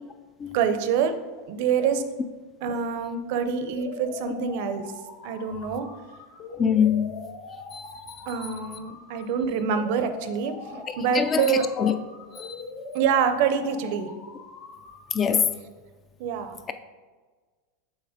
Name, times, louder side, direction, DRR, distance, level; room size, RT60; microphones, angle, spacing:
voice 1, 0.5-1.1 1.5-2.0 2.6-4.9 5.2-5.9 8.3-11.7 12.9-14.1 16.2-16.6, right 7 dB, 60° right, 0.6 m, -26 dB
sound 1, 3.4-15.4, left 3 dB, 60° left, 1.4 m, -42 dB
voice 2, 6.6-7.1 7.7-7.9 10.8-11.9 12.3-12.5 15.1-15.6, left 7 dB, 25° left, 0.4 m, -24 dB
7.2 x 3.3 x 4.9 m
supercardioid pair, 130°, 0 cm